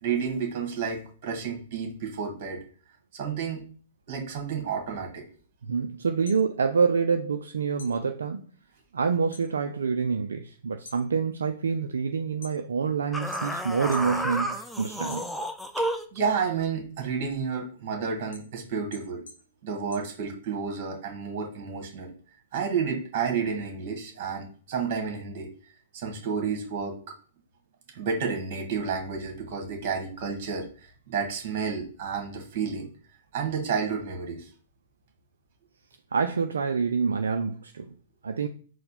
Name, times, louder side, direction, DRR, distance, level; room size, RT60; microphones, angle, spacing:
voice 1, 0.0-2.6 3.1-3.6 4.1-5.2 15.8-19.2 19.6-22.1 22.5-25.5 25.9-27.0 27.9-32.9 33.3-34.5, right 6 dB, 45° right, 4 dB, 1.5 m, -31 dB
voice 2, 5.6-8.4 8.9-15.2 36.1-37.9 38.2-38.5, right 5 dB, 75° right, 6 dB, 0.4 m, -27 dB
sound 1, 6.2-7.4 7.7-9.5 9.9-10.3 10.7-12.9 13.3-14.2 14.5-15.7 16.2-20.7, left 3 dB, 80° left, 0.8 m, -49 dB
sound 2, 13.1-16.2, right 1 dB, ahead, 0.4 m, -31 dB
4.2 x 2.1 x 4.2 m, 0.42 s
hypercardioid pair, 115°, 0 cm